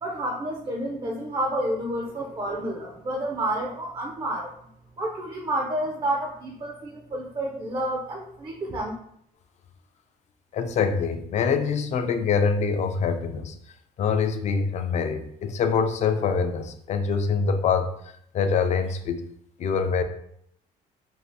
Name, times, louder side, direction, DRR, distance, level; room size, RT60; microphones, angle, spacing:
voice 1, 0.0-4.5 5.0-8.9, right 1 dB, 30° right, -1 dB, 0.4 m, -29 dB
voice 2, 10.5-13.5 14.0-17.9 18.3-19.2 19.6-20.0, left 5 dB, 45° left, 8 dB, 0.4 m, -24 dB
2.6 x 2.4 x 3.4 m, 0.69 s
cardioid pair, 110°, 17 cm